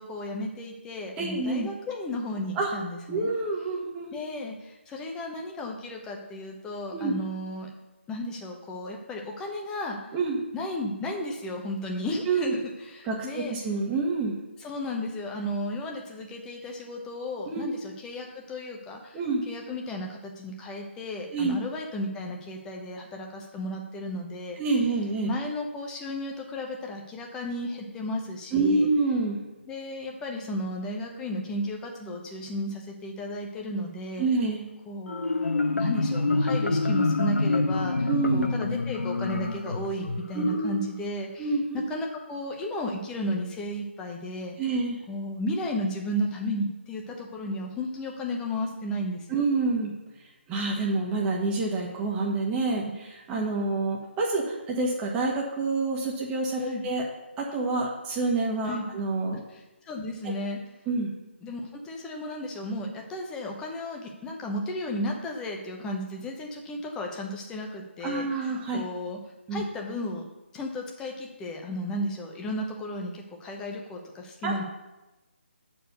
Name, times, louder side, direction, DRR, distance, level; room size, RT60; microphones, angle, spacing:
voice 1, 0.0-3.3 4.1-7.7 8.1-10.0 10.5-13.6 14.6-19.2 19.5-24.6 25.2-28.9 29.7-34.3 34.9-41.5 41.7-44.6 45.1-49.4 56.6-56.8 58.7-58.9 59.9-60.6 61.4-69.2 69.5-70.3 70.5-74.6, left 1 dB, 10° left, 1 dB, 0.9 m, -34 dB
voice 2, 1.2-1.7 2.5-2.7 3.1-4.1 6.9-7.1 10.1-10.4 12.2-12.5 13.0-14.4 17.5-17.7 19.1-19.4 21.3-21.6 24.6-25.3 28.5-29.4 34.2-34.6 38.1-38.5 40.3-40.8 41.4-41.8 44.6-45.0 49.3-49.9 50.5-52.8 53.3-57.0 57.4-59.4 60.9-61.1 68.0-68.8 69.5-69.6 74.4-74.5, right 3 dB, 15° right, -1 dB, 1.3 m, -27 dB
Marimba xylophone, 35.1-40.6, left 3 dB, 80° left, 0.8 m, -26 dB
7.6 x 4.7 x 6.6 m, 1.1 s
figure-of-eight pair, 150°, 7 cm